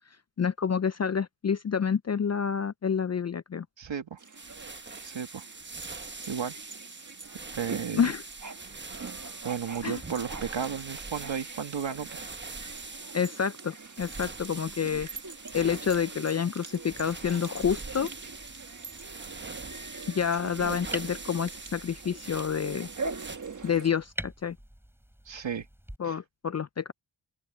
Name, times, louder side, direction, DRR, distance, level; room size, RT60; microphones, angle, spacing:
voice 1, 0.4-3.7 7.9-8.2 9.8-10.0 13.1-15.1 15.5-18.1 20.1-22.9 23.6-24.6 26.0-26.9, left 7 dB, 40° left, 0.4 m, -28 dB
voice 2, 3.8-4.2 5.0-5.4 6.3-6.6 7.5-8.1 9.4-12.1 25.3-25.7 26.0-26.2, right 7 dB, 90° right, 2.1 m, -33 dB
sound 1, 4.2-23.9, right 4 dB, 40° right, 1.4 m, -43 dB
sound 2, 4.3-23.4, right 3 dB, 25° right, 1.0 m, -43 dB
sound 3, 17.9-26.0, equal, 5° right, 5.9 m, -46 dB
open air
cardioid pair, 65°, 44 cm